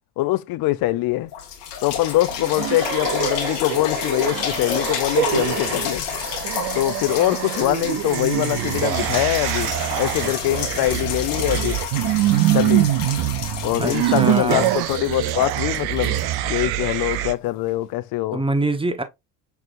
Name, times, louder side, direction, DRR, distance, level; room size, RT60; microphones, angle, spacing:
voice 1, 0.2-1.3 1.8-6.0 6.7-9.7 10.0-11.8 12.5-12.9 13.6-18.4, left 16 dB, 50° left, 0.6 m, -23 dB
sound 1, 0.8-0.9 1.3-17.1 17.7-17.8, left 8 dB, 80° left, 1.4 m, -30 dB
sound 2, 2.3-17.3, right 14 dB, 55° right, 0.7 m, -24 dB
voice 2, 13.8-14.7 18.3-19.0, right 2 dB, 10° right, 1.1 m, -24 dB
5.9 x 3.3 x 2.6 m
hypercardioid pair, 65°, 46 cm